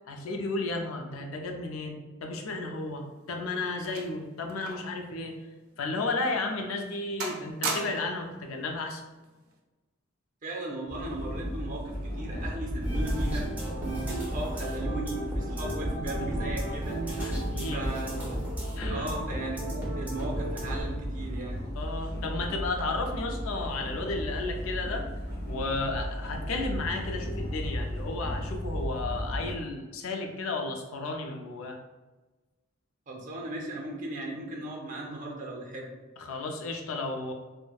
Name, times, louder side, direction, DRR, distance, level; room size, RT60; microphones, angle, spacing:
voice 1, 0.1-5.4 5.8-9.0 17.2-17.9 18.8-19.1 21.8-25.1 25.5-31.8 36.2-37.3, left 3 dB, 70° left, 3 dB, 0.4 m, -33 dB
sound 1, 2.9-5.0 5.3-5.5 6.1-6.2 6.7-6.9 7.2-8.2 9.2-9.5, right 3 dB, 90° right, 0.5 m, -37 dB
voice 2, 10.4-13.5 13.8-17.4 17.7-18.4 18.9-21.7 33.1-35.9, right 2 dB, 40° right, 0 dB, 0.5 m, -37 dB
sound 2, 10.9-29.5, equal, 50° left, 1.0 m, -35 dB
sound 3, 12.8-20.8, right 1 dB, 10° right, 0.7 m, -34 dB
3.2 x 2.1 x 2.3 m, 1.2 s
head